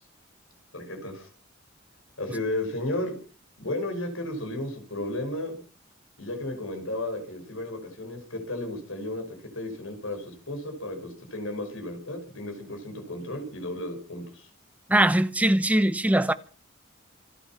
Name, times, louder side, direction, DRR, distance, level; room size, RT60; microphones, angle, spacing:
voice 1, 0.7-1.3 2.2-3.2 3.6-5.6 6.2-14.5, left 1 dB, 85° left, 5.3 m, -33 dB
voice 2, 14.9-16.3, right 1 dB, 5° right, 0.7 m, -21 dB
26.5 x 9.0 x 5.8 m
head